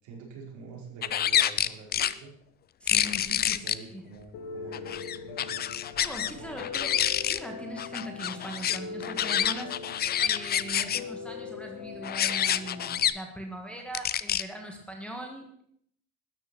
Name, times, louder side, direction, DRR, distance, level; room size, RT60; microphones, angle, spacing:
voice 1, 0.0-2.3 2.9-5.7 6.4-6.6, right 4 dB, 60° right, -1 dB, 5.1 m, -47 dB
sound 1, 1.0-2.1 2.9-3.7 4.7-6.3 6.6-7.4 7.8-11.0 12.0-13.1 13.9-14.4, left 10 dB, 30° left, 0.5 m, -27 dB
voice 2, 2.8-4.0 6.0-6.9 7.3-9.9 10.2-15.6, equal, 5° left, 1 dB, 1.7 m, -40 dB
Piano, 4.3-13.1, left 5 dB, 80° left, 2.0 m, -41 dB
13.0 x 9.9 x 6.1 m, 0.68 s
cardioid pair, 140°, 32 cm